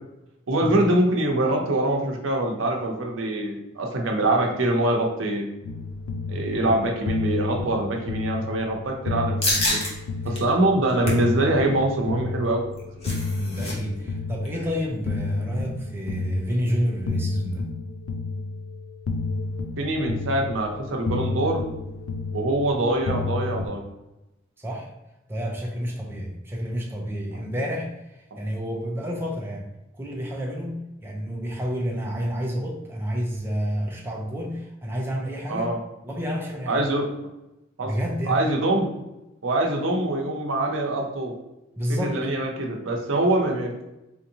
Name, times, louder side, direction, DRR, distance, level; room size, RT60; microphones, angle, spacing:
voice 1, 0.5-5.4 6.3-9.8 10.2-12.6 19.8-21.6 22.3-23.8 35.5-35.8 36.7-37.0 37.8-37.9 38.3-38.9 39.4-41.3 41.9-43.7, right 1 dB, 75° right, 1 dB, 0.7 m, -24 dB
sound 1, 5.6-23.7, left 3 dB, 85° left, 0.4 m, -31 dB
sound 2, 9.4-9.9 10.3-10.4 10.8-11.3 12.6-13.7 14.0-14.1 14.5-14.7, left 1 dB, 30° left, 0.9 m, -27 dB
voice 2, 13.4-17.7 24.6-24.9 25.3-29.7 30.0-35.7 36.0-36.8 37.8-38.4 41.8-42.2, equal, 10° right, -1 dB, 0.5 m, -29 dB
4.3 x 2.7 x 2.8 m, 0.93 s
head